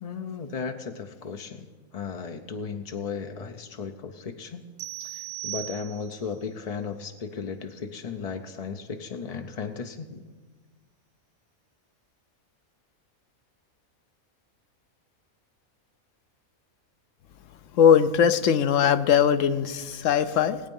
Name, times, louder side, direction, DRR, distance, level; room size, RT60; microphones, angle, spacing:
voice 1, 0.0-1.7 1.9-4.6 5.0-10.2, left 5 dB, 45° left, 5 dB, 0.5 m, -35 dB
sound 1, 4.8-6.3, right 19 dB, 80° right, 1.0 m, -37 dB
voice 2, 17.7-20.6, left 8 dB, 65° left, 12 dB, 1.0 m, -20 dB
19.0 x 8.8 x 5.4 m, 1.4 s
omnidirectional pair, 1.5 m